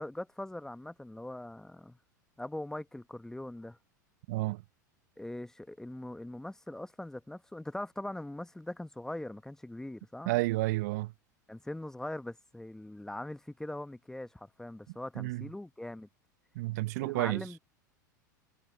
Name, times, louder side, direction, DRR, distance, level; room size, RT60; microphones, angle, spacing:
voice 1, 0.0-2.0 2.4-3.8 5.2-10.3 11.5-16.1 17.0-17.6, left 1 dB, 5° left, 1.2 m, -41 dB
voice 2, 4.3-4.6 10.3-11.1 15.2-15.4 16.5-17.4, right 21 dB, 60° right, 0.8 m, -30 dB
figure-of-eight pair, 85°, 10 cm